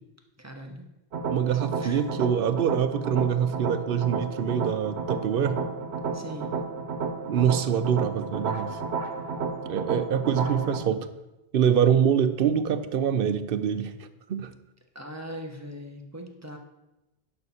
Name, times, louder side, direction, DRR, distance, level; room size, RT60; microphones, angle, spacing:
voice 1, 0.4-0.9 1.5-2.0 6.1-6.5 9.5-9.6 14.9-16.6, equal, 15° right, 3 dB, 0.9 m, -40 dB
sound 1, 1.1-10.8, right 4 dB, 80° right, 1.1 m, -32 dB
voice 2, 1.3-5.6 7.3-8.8 9.7-11.1 11.5-13.9 14.3-14.5, right 8 dB, 65° right, 11 dB, 0.8 m, -25 dB
11.5 x 5.7 x 4.2 m, 0.97 s
omnidirectional pair, 1.1 m